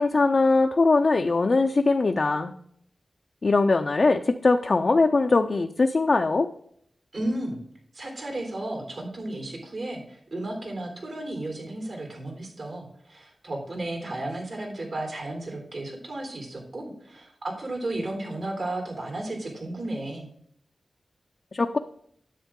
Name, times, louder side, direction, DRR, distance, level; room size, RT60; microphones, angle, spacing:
voice 1, 0.0-2.5 3.4-6.5 21.5-21.8, left 3 dB, 55° left, 5 dB, 0.6 m, -21 dB
voice 2, 7.1-7.6 7.9-20.3, right 1 dB, 70° right, 2 dB, 3.8 m, -33 dB
10.0 x 7.7 x 3.7 m, 0.66 s
cardioid pair, 50°, 0 cm